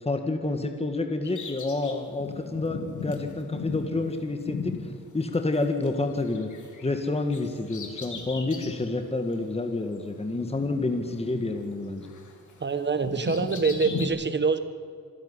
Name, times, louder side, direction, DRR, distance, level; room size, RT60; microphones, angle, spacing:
voice 1, 0.0-6.5 6.8-12.1, left 2 dB, 20° left, 6 dB, 1.8 m, -29 dB
Bird vocalization bird call bird song, 1.2-5.9 6.1-8.9 9.3-9.4 10.3-11.8 12.0-14.1, left 5 dB, 65° left, 3.4 m, -37 dB
voice 2, 12.6-14.6, right 4 dB, 35° right, 11 dB, 1.7 m, -25 dB
26.5 x 11.0 x 9.9 m, 2.4 s
cardioid pair, 110°, 33 cm